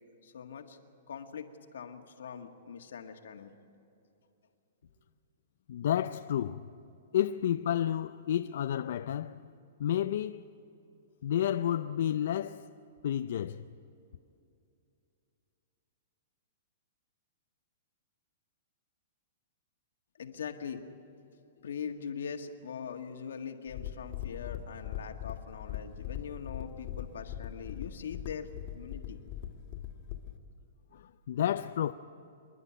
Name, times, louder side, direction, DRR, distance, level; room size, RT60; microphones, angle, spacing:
voice 1, 0.2-0.8 1.1-3.5 20.2-20.8 21.6-28.5 28.7-29.2, left 7 dB, 85° left, 1.8 m, -42 dB
voice 2, 5.7-6.7 7.1-9.4 9.8-10.4 11.2-12.7 13.0-13.7 30.9-31.9, left 10 dB, 65° left, 0.5 m, -31 dB
sound 1, 23.7-30.4, left 11 dB, 40° left, 1.8 m, -41 dB
27.0 x 11.0 x 9.9 m
hypercardioid pair, 160°, 0 cm